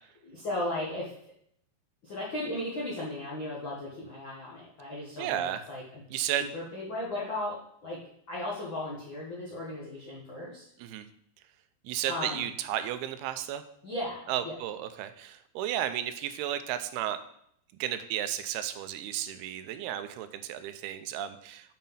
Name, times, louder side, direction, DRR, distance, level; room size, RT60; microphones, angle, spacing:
voice 1, 0.2-1.1 2.0-6.0 6.5-8.0 8.3-10.6 12.1-12.5 13.8-14.6, left 1 dB, 65° left, -6 dB, 1.2 m, -36 dB
voice 2, 5.2-5.6 6.1-6.4 10.8-11.1 11.8-13.6 14.3-17.2 17.8-21.8, right 11 dB, 85° right, 10 dB, 2.5 m, -33 dB
7.5 x 5.2 x 5.6 m, 0.69 s
omnidirectional pair, 4.5 m